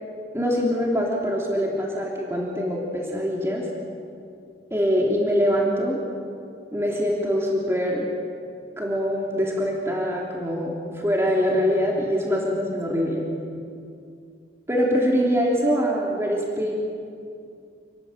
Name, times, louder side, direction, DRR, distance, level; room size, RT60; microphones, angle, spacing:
voice 1, 0.3-3.7 4.7-6.0 6.7-8.1 8.8-13.3 14.7-16.8, equal, 15° right, -2 dB, 3.3 m, -24 dB
29.0 x 21.0 x 8.1 m, 2.4 s
head